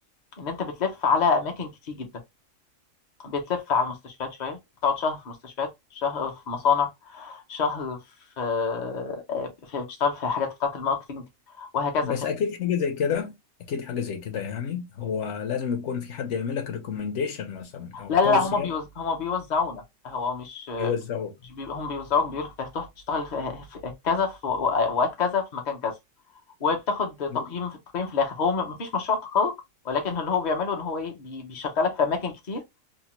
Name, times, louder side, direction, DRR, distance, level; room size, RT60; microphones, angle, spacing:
voice 1, 0.4-2.1 3.2-8.0 8.4-11.2 11.6-12.1 17.9-20.9 21.5-25.9 26.6-29.5 29.8-32.6, left 5 dB, 45° left, 0.6 m, -27 dB
voice 2, 12.0-13.3 13.7-18.7 20.8-21.3 27.3-27.4, left 7 dB, 60° left, 1.0 m, -29 dB
2.8 x 2.1 x 2.9 m
omnidirectional pair, 1.5 m